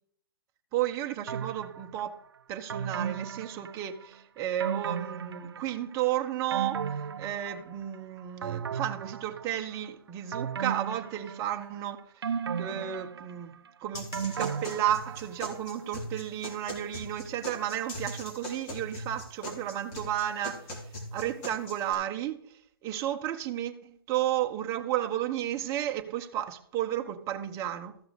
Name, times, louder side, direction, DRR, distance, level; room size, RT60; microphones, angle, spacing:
voice 1, 0.7-2.2 2.5-6.8 7.2-12.0 12.6-13.5 13.8-20.6 21.1-22.4 22.8-28.0, right 11 dB, 25° right, 1.1 m, -32 dB
sound 1, 1.3-2.1 2.7-4.1 4.6-5.9 6.3-8.0 8.4-9.8 10.3-11.8 12.2-15.5 15.8-15.9, right 7 dB, 80° right, 0.6 m, -35 dB
sound 2, 13.9-21.9, equal, 30° left, 3.6 m, -40 dB
14.0 x 6.2 x 4.9 m
hypercardioid pair, 140°, 13 cm